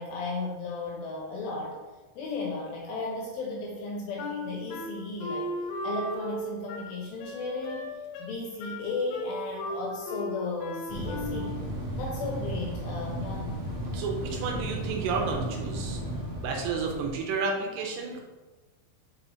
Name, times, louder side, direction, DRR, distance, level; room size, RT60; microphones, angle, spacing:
voice 1, 0.0-1.8 2.2-5.5 5.8-7.9 8.2-11.5 12.0-13.5, left 3 dB, 75° left, -1 dB, 2.3 m, -35 dB
Wind instrument woodwind instrument, 4.2-11.6, left 1 dB, 90° left, 3.1 m, -36 dB
sound 1, 10.9-17.1, right 1 dB, 55° right, 1.3 m, -34 dB
voice 2, 13.9-16.0 16.4-18.2, right 4 dB, 80° right, 1 dB, 2.9 m, -31 dB
5.7 x 5.5 x 2.9 m, 1.2 s
omnidirectional pair, 5.0 m